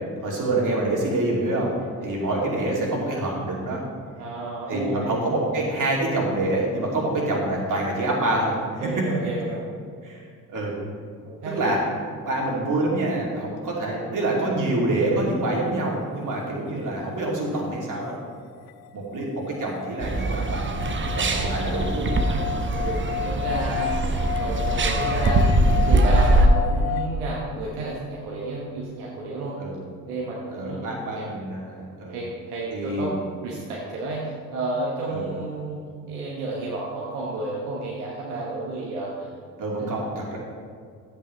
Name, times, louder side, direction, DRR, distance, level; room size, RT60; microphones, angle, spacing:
voice 1, 0.2-1.7 2.0-3.8 4.7-8.5 9.0-9.1 10.0-10.2 10.5-10.8 11.5-11.8 12.2-18.2 18.9-22.4 29.6-29.8 30.5-32.2 32.7-33.2 35.1-35.3 39.6-40.4, right 2 dB, 40° right, -3 dB, 2.7 m, -26 dB
voice 2, 4.2-5.2 8.8-9.6 11.2-11.7 22.7-29.5 30.1-30.8 31.2-31.3 32.1-33.2 33.4-35.8 36.1-39.4, right 2 dB, 75° right, -4 dB, 1.3 m, -31 dB
sound 1, 18.7-27.1, left 12 dB, 60° left, 0.5 m, -32 dB
sound 2, 20.0-26.5, right 2 dB, 25° right, 0.9 m, -22 dB
12.0 x 8.3 x 3.2 m, 2.2 s
figure-of-eight pair, 45°, 45 cm